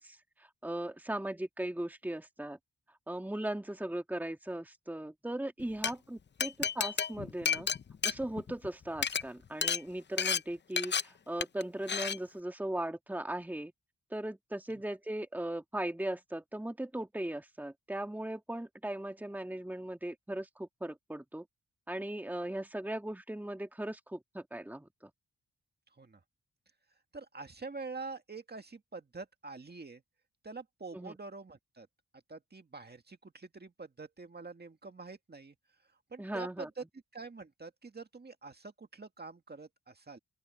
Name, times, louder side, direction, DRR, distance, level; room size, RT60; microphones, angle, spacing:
voice 1, 0.0-2.6 3.1-7.7 8.0-13.7 14.1-21.5 21.9-25.1 30.9-31.2 36.2-36.7, right 1 dB, 5° right, 1.8 m, -38 dB
Glass, 5.6-5.9 6.4-8.7 9.0-9.2 9.6-9.8 10.2-10.4 10.8-11.0 11.4-11.6 11.9-12.2, left 6 dB, 35° left, 0.6 m, -31 dB
voice 2, 27.1-30.0 30.4-31.9 32.3-35.6 36.1-36.8 37.1-40.2, right 4 dB, 30° right, 1.9 m, -46 dB
open air
wide cardioid pair, 105°, 33 cm